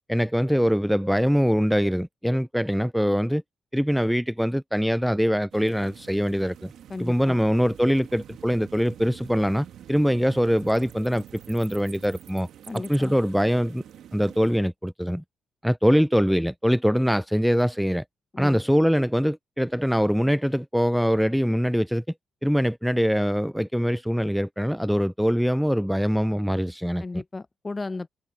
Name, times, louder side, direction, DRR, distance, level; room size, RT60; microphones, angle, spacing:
voice 1, 0.1-3.4 3.7-6.7 7.0-12.5 12.7-13.8 14.1-15.2 15.6-18.0 18.4-22.0 22.4-27.2, equal, ahead, 0.3 m, -23 dB
sound 1, 5.5-14.6, right 10 dB, 75° right, 1.6 m, -46 dB
voice 2, 6.9-7.4 12.7-13.2 18.3-18.6 27.0-28.1, left 3 dB, 30° left, 1.0 m, -34 dB
supercardioid pair, 60°, 0 cm